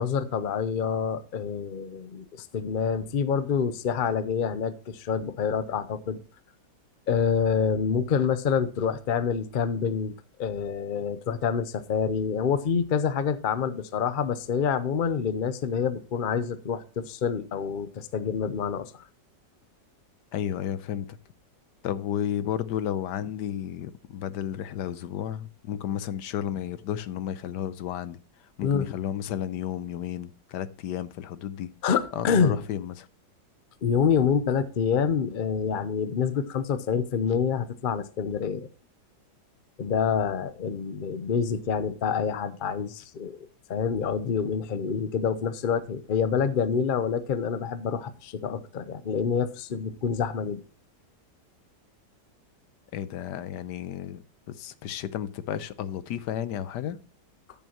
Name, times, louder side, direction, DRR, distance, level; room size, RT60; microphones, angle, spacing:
voice 1, 0.0-6.2 7.1-10.1 10.4-19.0 28.6-28.9 31.8-32.6 33.8-38.7 39.8-50.6, left 6 dB, 55° left, 0.6 m, -27 dB
voice 2, 20.3-21.2 21.8-28.2 28.6-31.7 32.1-33.1 52.9-57.0, left 10 dB, 80° left, 1.3 m, -32 dB
13.5 x 7.2 x 2.9 m
omnidirectional pair, 1.9 m